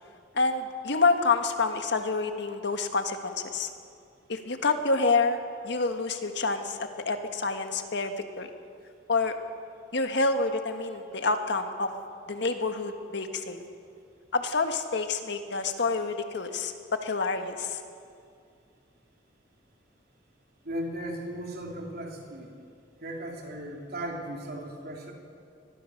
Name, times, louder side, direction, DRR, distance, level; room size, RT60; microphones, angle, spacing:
voice 1, 0.3-3.7 4.3-5.4 5.6-8.5 9.1-9.4 9.9-11.9 12.3-13.7 14.3-16.7 17.0-17.8, left 3 dB, 65° left, 6 dB, 1.6 m, -28 dB
voice 2, 20.6-22.6 23.0-25.1, right 1 dB, 55° right, 0 dB, 3.7 m, -36 dB
23.5 x 19.5 x 6.6 m, 2.4 s
head